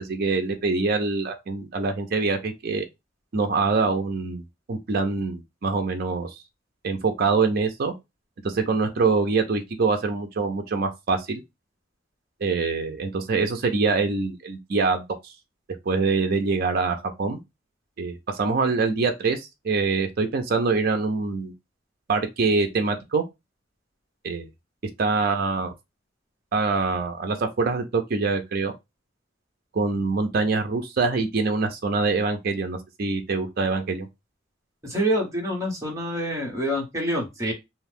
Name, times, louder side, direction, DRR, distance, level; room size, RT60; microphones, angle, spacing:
voice 1, 0.0-2.8 3.3-4.4 4.7-6.3 6.8-7.9 8.4-11.4 12.4-15.3 15.9-17.4 18.0-21.5 22.1-23.2 24.2-24.5 25.0-25.7 26.5-28.7 29.7-34.1, right 4 dB, 55° right, 0.5 m, -24 dB
voice 2, 34.8-37.5, equal, 15° right, 1.1 m, -26 dB
2.6 x 2.3 x 3.3 m
head